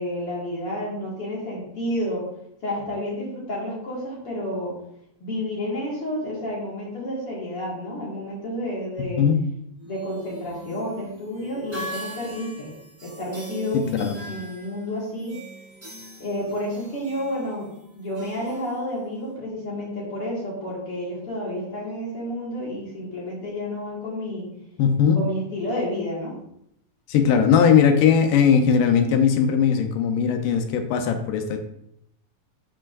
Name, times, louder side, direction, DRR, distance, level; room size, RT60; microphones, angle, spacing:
voice 1, 0.0-2.3 2.6-4.8 5.2-9.3 9.8-12.7 13.0-15.3 16.2-17.7 18.0-24.5 25.1-26.3, left 1 dB, 45° left, -5 dB, 2.6 m, -30 dB
sound 1, 9.8-19.3, equal, 5° right, 1.6 m, -42 dB
voice 2, 13.7-14.2 24.8-25.2 27.1-31.6, left 7 dB, 80° left, 6 dB, 2.4 m, -19 dB
11.5 x 4.9 x 2.5 m, 0.75 s
omnidirectional pair, 3.9 m